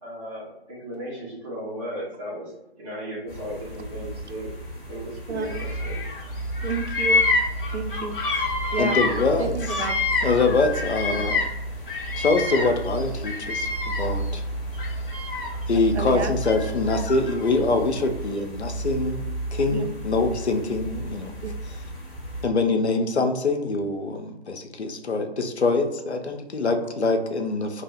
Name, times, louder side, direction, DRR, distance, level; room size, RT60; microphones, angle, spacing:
voice 1, 0.0-4.5 4.9-6.0, equal, 30° right, -6 dB, 1.3 m, -36 dB
sound 1, 3.3-22.5, right 1 dB, 15° left, 0.6 m, -33 dB
voice 2, 5.3-5.6 6.6-7.2 7.7-8.2 8.7-9.0 9.4-10.0 11.1-11.3 15.9-16.3 19.7-19.9 21.4-21.5, right 5 dB, 85° right, 7 dB, 0.5 m, -30 dB
Bird vocalization bird call bird song, 5.5-6.2 6.5-11.6 11.9-14.3 14.7-15.7 16.4-17.5, left 3 dB, 55° left, 0.7 m, -27 dB
voice 3, 8.8-9.9 10.2-11.4 12.1-14.4 15.7-21.3 21.6-21.8 22.4-27.8, left 3 dB, 85° left, 5 dB, 0.6 m, -24 dB
2.8 x 2.0 x 3.9 m, 0.91 s
figure-of-eight pair, 145°, 33 cm